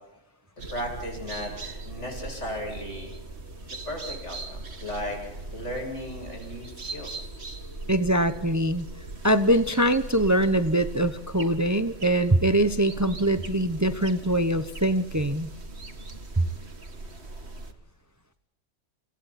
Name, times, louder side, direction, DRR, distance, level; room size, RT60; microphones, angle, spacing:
sound 1, 0.6-17.7, right 2 dB, 60° right, 2.3 m, -40 dB
voice 1, 0.7-3.1 3.7-7.3, equal, 75° left, 2 dB, 8.2 m, -36 dB
voice 2, 7.9-8.9 9.2-15.5, right 1 dB, 15° right, 10 dB, 0.9 m, -23 dB
30.0 x 29.5 x 4.3 m, 0.88 s
omnidirectional pair, 1.2 m